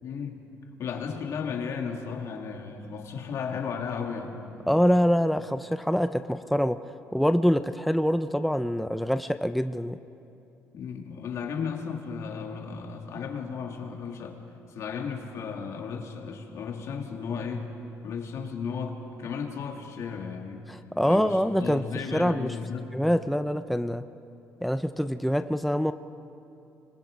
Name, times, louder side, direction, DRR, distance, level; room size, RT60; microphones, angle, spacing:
voice 1, 0.0-0.4 0.8-4.4 10.7-14.4 14.7-17.7 18.0-20.6 21.0-22.9, left 6 dB, 65° left, 2 dB, 2.5 m, -34 dB
voice 2, 4.7-6.8 7.1-10.0 20.7-21.8 22.1-22.6 22.9-24.0 24.6-25.9, equal, ahead, 10 dB, 0.5 m, -25 dB
25.5 x 22.5 x 5.3 m, 2.8 s
cardioid pair, 100°, 6 cm